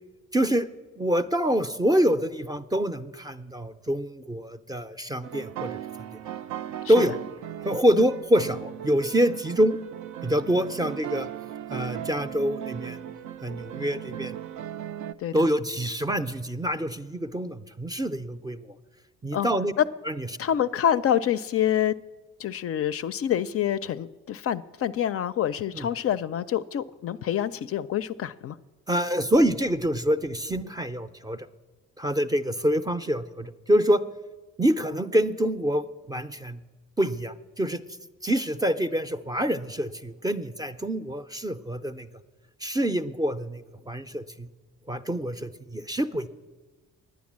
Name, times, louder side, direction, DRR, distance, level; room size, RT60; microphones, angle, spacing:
voice 1, 0.3-0.7 1.0-6.1 6.9-7.1 7.6-9.8 10.2-11.3 11.7-13.0 13.4-14.4 15.3-18.7 19.2-19.7 20.1-20.3 25.7-25.9 28.9-31.5 32.0-34.0 34.6-36.6 37.0-37.8 38.2-42.1 42.6-44.5 44.9-46.3, equal, 15° right, 0.5 m, -26 dB
sound 1, 5.2-15.1, right 11 dB, 75° right, 0.5 m, -37 dB
voice 2, 20.4-22.0 22.4-28.6, left 10 dB, 50° left, 0.4 m, -26 dB
10.0 x 9.5 x 7.3 m
cardioid pair, 90°, 30 cm